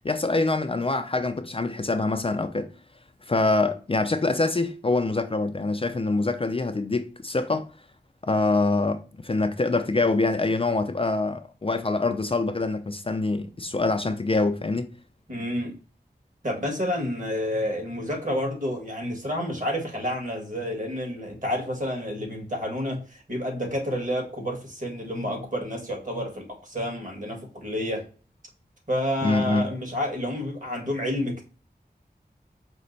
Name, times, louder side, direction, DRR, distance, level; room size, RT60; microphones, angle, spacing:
voice 1, 0.0-2.7 3.2-7.7 8.2-14.9 29.2-29.7, left 3 dB, 35° left, 0.4 m, -25 dB
voice 2, 15.3-15.7 16.4-28.0 28.9-31.4, equal, 50° right, 1.8 m, -29 dB
5.1 x 2.1 x 3.9 m
wide cardioid pair, 65°, 17 cm